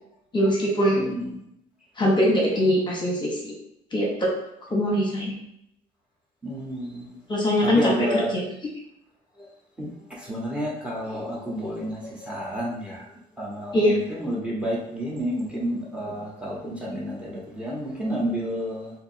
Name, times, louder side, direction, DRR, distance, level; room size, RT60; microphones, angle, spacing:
voice 1, 0.3-1.0 2.0-3.5 3.9-4.3 4.7-5.3 7.3-8.4 13.7-14.0, equal, 25° left, -2 dB, 0.9 m, -22 dB
voice 2, 1.0-1.4 6.4-7.0 7.6-8.3 9.8-13.0 13.4-18.9, equal, 5° right, -4 dB, 1.0 m, -30 dB
2.7 x 2.5 x 4.2 m, 0.78 s
cardioid pair, 110°, 17 cm